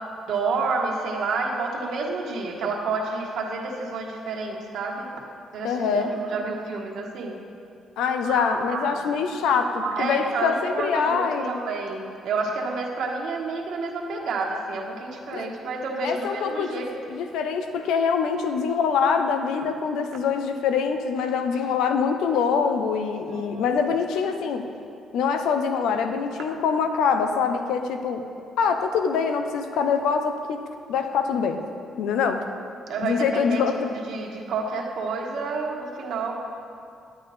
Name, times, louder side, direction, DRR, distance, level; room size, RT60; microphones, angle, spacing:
voice 1, 0.3-5.1 5.5-7.4 8.2-16.9 23.3-23.7 32.9-33.6 34.1-36.4, right 3 dB, 75° right, 0 dB, 1.4 m, -29 dB
voice 2, 5.6-6.2 8.0-11.6 15.3-15.5 16.0-24.7 25.1-28.3 28.6-30.6 30.9-31.6 32.0-32.4 33.0-33.9, left 6 dB, 85° left, 7 dB, 0.7 m, -24 dB
10.5 x 8.9 x 4.1 m, 2.4 s
cardioid pair, 90°, 0 cm